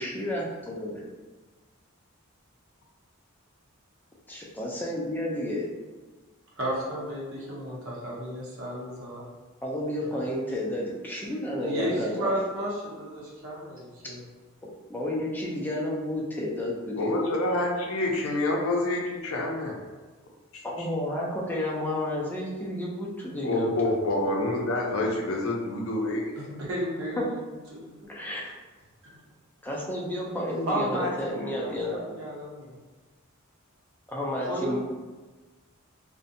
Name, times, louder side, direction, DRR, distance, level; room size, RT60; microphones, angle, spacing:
voice 1, 0.0-1.0 4.3-5.7 9.6-12.3 14.9-17.2 20.6-23.7 27.2-27.3 28.1-28.6 29.6-32.2 34.1-34.8, left 1 dB, 10° left, -4 dB, 0.3 m, -31 dB
voice 2, 6.6-9.3 10.0-10.2 11.6-14.2 26.4-27.4 27.7-27.9 28.4-28.5 29.1-29.2 30.7-32.8 34.4-34.8, equal, 65° right, -4 dB, 0.7 m, -33 dB
voice 3, 17.0-19.8 20.5-20.6 23.4-26.2, left 2 dB, 70° left, 0 dB, 0.5 m, -27 dB
2.6 x 2.1 x 2.6 m, 1.3 s
head